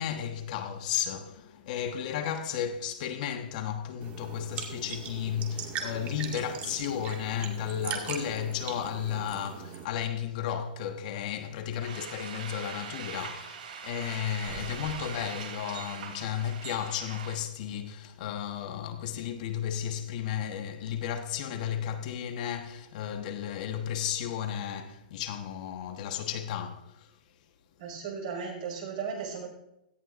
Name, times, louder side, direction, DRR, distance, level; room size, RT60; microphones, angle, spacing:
voice 1, 0.0-27.2, left 9 dB, 55° left, 1.2 m, -34 dB
sound 1, 4.0-9.8, right 7 dB, 30° right, 1.9 m, -40 dB
sound 2, 11.8-17.4, right 6 dB, 70° right, 3.0 m, -41 dB
voice 2, 27.8-29.5, right 6 dB, 50° right, 5.7 m, -36 dB
17.0 x 14.0 x 2.6 m
hypercardioid pair, 140°, 5 cm